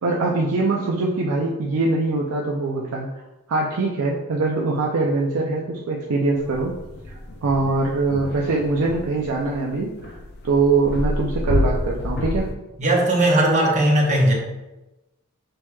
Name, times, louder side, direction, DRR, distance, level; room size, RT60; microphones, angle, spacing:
voice 1, 0.0-3.1 3.5-6.8 7.1-9.9 10.4-12.5, right 3 dB, 75° right, -2 dB, 0.5 m, -22 dB
sound 1, 6.4-12.5, left 1 dB, 50° left, 0.5 m, -29 dB
voice 2, 12.8-14.3, right 1 dB, 35° right, -1 dB, 0.8 m, -18 dB
6.1 x 3.0 x 2.2 m, 1.0 s
head